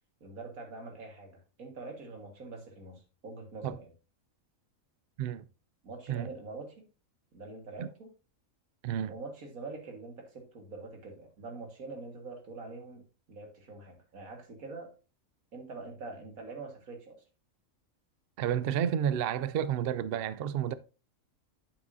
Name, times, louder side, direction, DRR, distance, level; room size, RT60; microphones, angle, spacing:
voice 1, 0.2-3.9 5.8-6.9 7.3-8.1 9.1-13.0 13.3-14.9 15.5-17.2, right 3 dB, 90° right, 2.2 m, -44 dB
voice 2, 18.4-20.7, right 9 dB, 65° right, 0.6 m, -31 dB
8.9 x 7.2 x 2.7 m
omnidirectional pair, 1.4 m